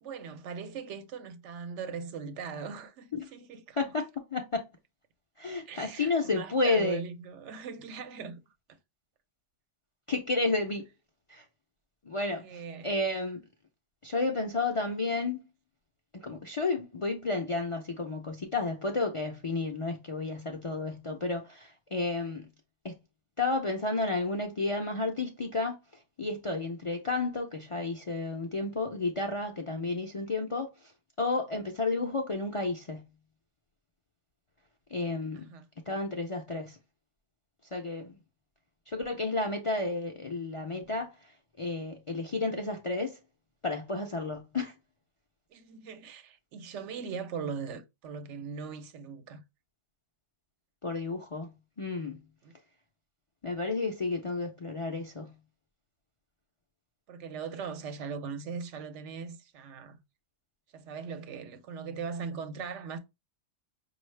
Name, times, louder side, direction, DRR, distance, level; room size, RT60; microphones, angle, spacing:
voice 1, 0.0-3.8 5.7-8.4 12.4-12.9 35.3-35.7 45.5-49.4 52.4-52.5 57.1-60.0 60.7-63.0, right 6 dB, 75° right, 0.9 m, -40 dB
voice 2, 3.8-4.6 5.4-7.0 10.1-10.9 11.3-11.4 12.1-13.4 14.0-15.4 16.2-22.5 22.8-22.9 23.4-25.8 26.2-30.7 31.2-33.0 34.9-35.5 35.9-36.8 37.7-38.1 38.9-41.1 41.6-43.2 43.6-44.7 50.8-51.5 51.8-52.2 53.4-55.3, left 3 dB, 45° left, 0.4 m, -31 dB
5.4 x 2.4 x 3.2 m
omnidirectional pair, 1.2 m